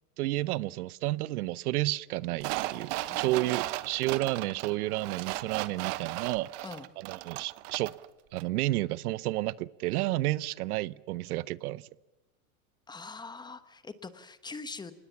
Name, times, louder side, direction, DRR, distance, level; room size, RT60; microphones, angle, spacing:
voice 1, 0.2-6.5 7.0-7.9 8.3-11.9, right 17 dB, 75° right, 0.8 m, -31 dB
sound 1, 2.4-8.1 8.4-8.5, right 18 dB, 45° right, 1.1 m, -36 dB
voice 2, 3.0-3.7 6.6-6.9 12.9-15.0, left 4 dB, 10° left, 1.0 m, -43 dB
26.0 x 20.0 x 7.1 m
supercardioid pair, 145°, 45 cm